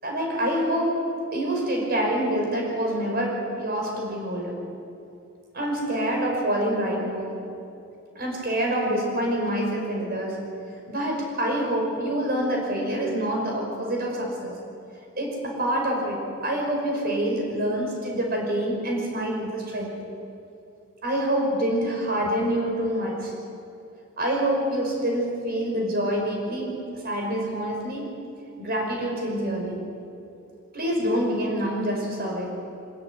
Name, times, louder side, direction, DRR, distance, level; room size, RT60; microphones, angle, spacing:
voice 1, 0.0-4.6 5.5-7.4 8.2-10.4 10.9-14.6 15.2-20.0 21.0-23.3 24.2-28.2 28.6-29.9 30.7-32.6, right 1 dB, 45° right, 0 dB, 5.6 m, -26 dB
25.5 x 13.5 x 9.9 m, 2.7 s
head